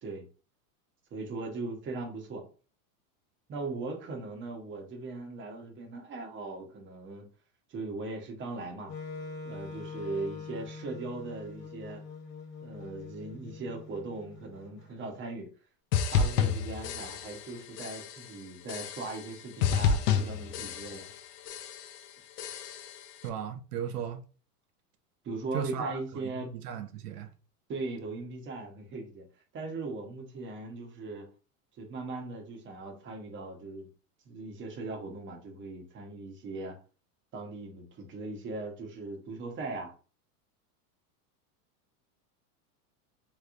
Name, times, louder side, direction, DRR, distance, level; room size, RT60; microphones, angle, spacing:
voice 1, 1.1-2.4 3.5-7.3 7.7-8.9 9.4-12.0 12.6-15.5 16.1-21.1 25.2-26.5 27.7-29.2 29.5-31.3 31.8-33.9 34.2-36.8 37.3-39.9, right 3 dB, 25° right, 0.9 m, -39 dB
Wind instrument woodwind instrument, 8.9-14.9, left 4 dB, 35° left, 1.1 m, -44 dB
sound 1, 15.9-17.5 17.8-18.3 18.7-19.3 19.6-21.2 21.5-22.0 22.4-23.0, left 6 dB, 80° left, 0.7 m, -30 dB
voice 2, 23.2-24.2 25.5-27.3, right 9 dB, 90° right, 0.7 m, -36 dB
3.3 x 3.1 x 2.5 m
supercardioid pair, 125°, 46 cm